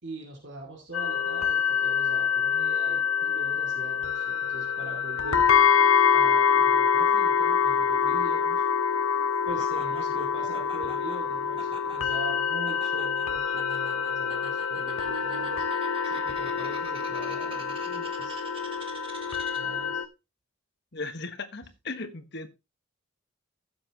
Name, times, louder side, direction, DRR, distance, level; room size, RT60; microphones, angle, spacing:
voice 1, 0.0-5.5 6.1-8.6 9.5-15.7 16.0-18.4 19.5-20.0 21.6-21.7, right 2 dB, 60° right, -1 dB, 2.5 m, -42 dB
sound 1, 0.9-20.1, left 7 dB, 85° left, 1.1 m, -26 dB
Laughter, 9.6-19.8, right 3 dB, 25° right, 1.9 m, -47 dB
voice 2, 20.9-22.5, left 3 dB, 55° left, 8 dB, 1.4 m, -36 dB
15.5 x 7.7 x 3.0 m, 0.26 s
head